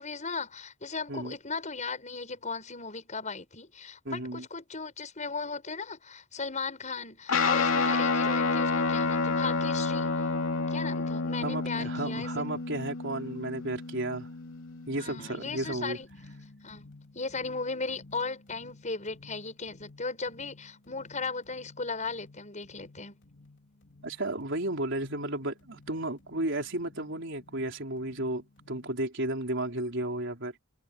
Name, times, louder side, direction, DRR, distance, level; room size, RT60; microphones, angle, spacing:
voice 1, 0.0-10.2 10.7-12.4 15.0-16.1 16.6-16.8 17.1-23.1, left 4 dB, 35° left, 6.7 m, -37 dB
voice 2, 4.0-4.4 11.4-14.3 14.9-16.0 24.0-30.5, right 1 dB, 60° right, 4.5 m, -33 dB
Guitar, 7.3-16.0, left 4 dB, 85° left, 2.4 m, -29 dB
sound 1, 15.1-29.0, left 2 dB, 60° left, 4.0 m, -55 dB
head